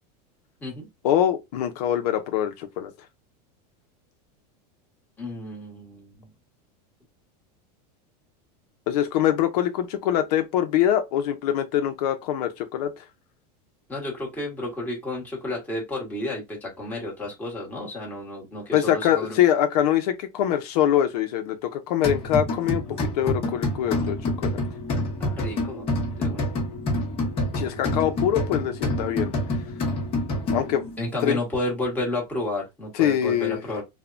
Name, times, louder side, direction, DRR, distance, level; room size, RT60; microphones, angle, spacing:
voice 1, 1.0-2.9 8.9-13.0 18.7-24.6 27.5-29.3 30.5-30.9 31.2-31.4 32.9-33.6, left 10 dB, 70° left, 0.5 m, -24 dB
voice 2, 5.2-6.3 13.9-19.4 25.2-25.9 26.2-26.5 31.0-33.8, left 2 dB, 10° left, 1.1 m, -31 dB
sound 1, 22.0-30.9, left 1 dB, 30° left, 0.9 m, -27 dB
3.2 x 2.1 x 2.4 m
supercardioid pair, 155°, 21 cm